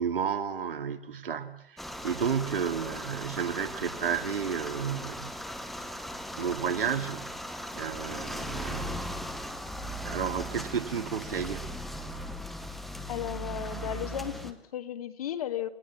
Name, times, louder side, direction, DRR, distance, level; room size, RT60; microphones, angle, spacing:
voice 1, 0.0-5.3 6.4-7.4 7.8-9.2 10.0-11.6, right 7 dB, 60° right, 2.5 m, -32 dB
sound 1, 1.8-14.5, equal, ahead, 0.8 m, -38 dB
voice 2, 13.1-15.7, left 11 dB, 35° left, 1.9 m, -35 dB
30.0 x 16.5 x 7.3 m
hypercardioid pair, 155°, 31 cm